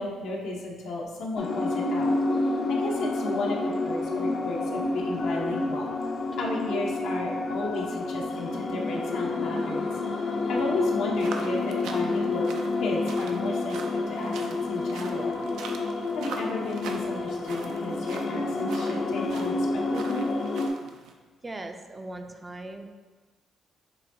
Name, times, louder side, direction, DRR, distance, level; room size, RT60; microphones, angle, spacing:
voice 1, 0.0-2.1 2.7-5.9 6.4-9.9 10.5-12.5 12.8-15.4 16.1-20.3, left 2 dB, 80° left, -1 dB, 0.8 m, -34 dB
sound 1, 1.4-20.7, left 2 dB, 50° left, 0.5 m, -29 dB
sound 2, 11.1-21.1, right 4 dB, 85° right, 0.4 m, -43 dB
voice 2, 21.4-22.9, right 2 dB, 20° right, 5 dB, 0.4 m, -39 dB
6.8 x 2.6 x 2.6 m, 1.4 s
cardioid pair, 90°, 0 cm